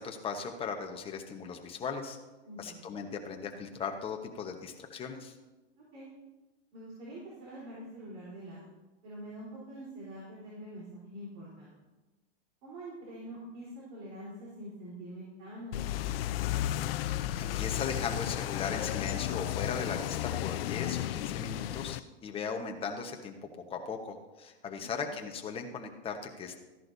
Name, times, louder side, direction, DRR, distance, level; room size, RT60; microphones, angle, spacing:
voice 1, 0.0-2.2 2.6-5.3 16.9-23.4 23.7-26.6, left 5 dB, 15° left, 3 dB, 1.1 m, -38 dB
voice 2, 2.4-2.9 5.9-6.1 6.7-8.7 9.0-11.8 12.6-16.1 24.7-25.1, right 1 dB, 45° right, -6 dB, 3.9 m, -45 dB
sound 1, 15.7-22.0, left 13 dB, 60° left, 0.6 m, -33 dB
14.0 x 11.0 x 2.7 m, 1.1 s
hypercardioid pair, 140°, 33 cm